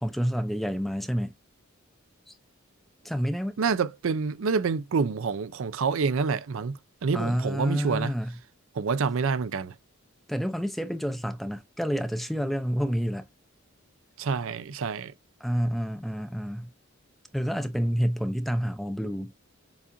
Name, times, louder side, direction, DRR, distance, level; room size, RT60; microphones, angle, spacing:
voice 1, 0.0-1.3 2.3-2.4 3.0-3.5 7.1-8.3 10.3-13.2 15.4-16.7 17.3-19.3, equal, ahead, 0.4 m, -29 dB
voice 2, 3.6-8.1 8.8-9.7 14.2-15.1, right 5 dB, 65° right, 0.4 m, -27 dB
7.0 x 2.5 x 2.5 m
head